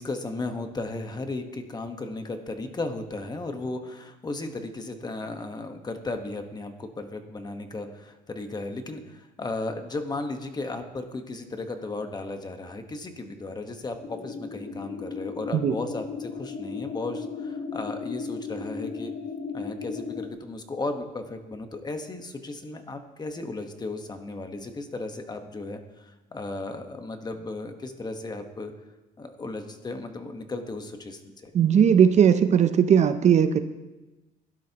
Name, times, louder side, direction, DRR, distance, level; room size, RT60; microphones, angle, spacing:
voice 1, 0.0-19.1 19.5-28.7 29.2-31.5, left 2 dB, 25° left, 6 dB, 1.3 m, -35 dB
sound 1, 14.0-20.3, left 5 dB, 55° left, 1.7 m, -35 dB
voice 2, 31.5-33.6, right 8 dB, 45° right, 11 dB, 0.6 m, -18 dB
16.5 x 11.5 x 3.0 m, 1.1 s
cardioid pair, 110°, 17 cm